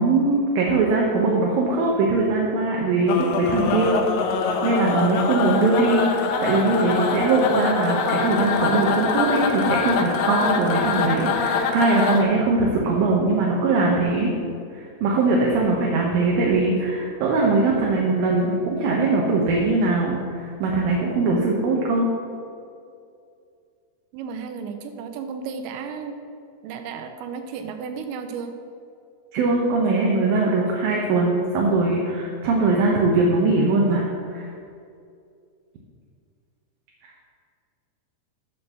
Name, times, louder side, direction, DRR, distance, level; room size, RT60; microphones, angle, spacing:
voice 1, 0.0-4.0 4.6-14.3 14.7-22.1 29.3-34.5, right 3 dB, 70° right, -2 dB, 2.3 m, -21 dB
sound 1, 3.1-12.2, left 5 dB, 90° left, 1.9 m, -24 dB
voice 2, 24.1-26.2 26.6-28.6, right 6 dB, 90° right, 7 dB, 3.0 m, -33 dB
11.5 x 3.9 x 6.7 m, 2.4 s
omnidirectional pair, 5.0 m